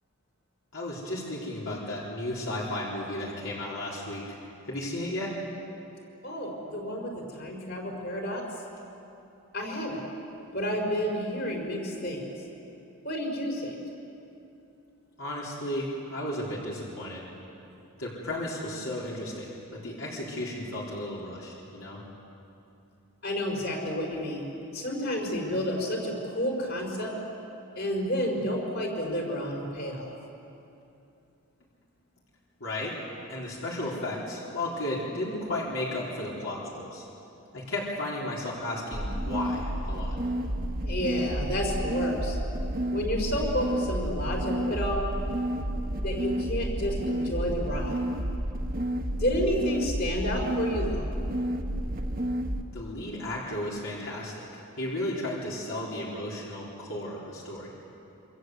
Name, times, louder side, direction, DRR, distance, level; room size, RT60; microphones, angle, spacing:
voice 1, 0.7-4.2 4.7-5.3 15.2-17.2 18.0-22.0 32.6-32.9 33.3-37.0 37.5-40.1 52.7-54.5 54.8-57.7, left 1 dB, 65° left, -5 dB, 4.4 m, -34 dB
voice 2, 6.2-8.4 9.5-10.0 10.5-12.2 13.0-13.7 23.2-24.5 24.7-27.2 27.8-30.0 40.9-42.4 42.9-45.1 46.0-48.0 49.1-51.1, equal, 50° left, 1 dB, 5.1 m, -30 dB
sound 1, 38.9-52.6, equal, 45° right, 1.5 m, -30 dB
27.5 x 26.0 x 8.0 m, 2.8 s
head